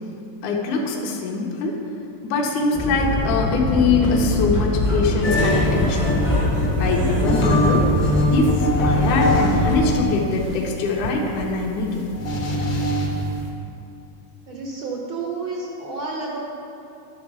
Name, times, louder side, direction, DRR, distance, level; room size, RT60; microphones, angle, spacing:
voice 1, 0.4-1.8 2.2-6.1 6.8-7.9 8.3-12.0, left 3 dB, 75° left, -1 dB, 2.2 m, -23 dB
sound 1, 2.7-10.0, left 1 dB, 20° left, 0.7 m, -23 dB
sound 2, 5.2-9.6 10.0-13.3, left 1 dB, 55° left, 1.4 m, -22 dB
voice 2, 14.5-16.4, right 3 dB, 80° right, -3 dB, 1.1 m, -30 dB
11.5 x 4.2 x 6.0 m, 2.7 s
omnidirectional pair, 3.7 m